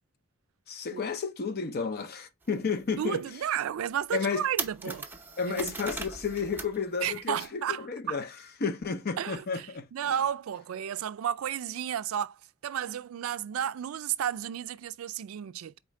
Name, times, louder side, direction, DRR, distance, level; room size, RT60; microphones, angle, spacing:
voice 1, 0.7-3.2 4.1-4.5 4.8-4.9 5.4-8.3 8.6-9.9, left 5 dB, 50° left, 0.6 m, -32 dB
sound 1, 2.4-2.5 3.0-3.1 3.7-3.8 4.1-6.8 7.0-7.5, right 4 dB, 10° right, 0.6 m, -38 dB
voice 2, 3.0-5.1 5.5-5.7 7.0-8.2 9.2-15.8, right 9 dB, 75° right, 0.3 m, -33 dB
4.3 x 3.6 x 3.2 m
head